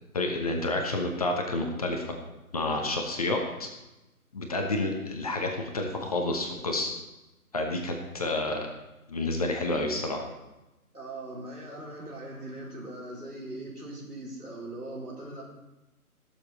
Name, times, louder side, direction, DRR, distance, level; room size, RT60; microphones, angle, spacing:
voice 1, 0.1-2.2 2.5-3.7 4.3-6.9 7.5-8.7 9.1-10.3, left 2 dB, 25° left, 2 dB, 1.0 m, -29 dB
voice 2, 10.9-15.4, right 1 dB, 85° right, -4 dB, 4.4 m, -40 dB
17.0 x 7.2 x 4.2 m, 1.0 s
figure-of-eight pair, 145°, 45 cm